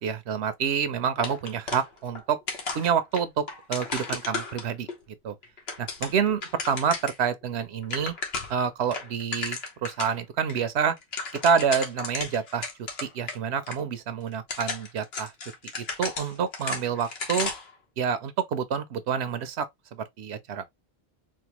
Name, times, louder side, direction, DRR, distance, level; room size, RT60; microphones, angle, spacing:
voice 1, 0.0-2.4 2.7-4.9 5.2-5.3 5.8-8.1 8.5-11.0 11.4-12.7 13.0-15.3 15.8-17.5 18.0-19.7 19.9-20.7, right 7 dB, 90° right, 0.9 m, -28 dB
sound 1, 1.2-2.2 2.5-4.9 5.4-7.2 7.5-7.6 7.8-8.6 8.9-10.2 10.5-10.6 10.9-13.4 13.7-13.8 14.3-17.7, left 4 dB, 70° left, 1.2 m, -34 dB
4.4 x 2.1 x 2.9 m
omnidirectional pair, 1.1 m